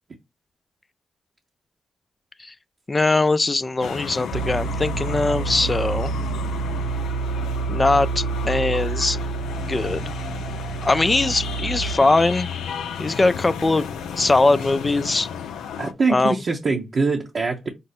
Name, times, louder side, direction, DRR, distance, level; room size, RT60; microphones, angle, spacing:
voice 1, 2.9-6.1 7.7-9.2 9.7-10.0 10.8-12.5 13.0-13.9 14.2-15.3 16.1-16.4, left 2 dB, 30° left, 0.4 m, -21 dB
sound 1, 3.8-15.9, left 7 dB, 90° left, 0.5 m, -33 dB
sound 2, 4.3-12.0, right 5 dB, 80° right, 0.4 m, -28 dB
voice 2, 15.8-17.7, right 4 dB, 55° right, 0.8 m, -23 dB
5.2 x 2.1 x 4.2 m
supercardioid pair, 50°, 0 cm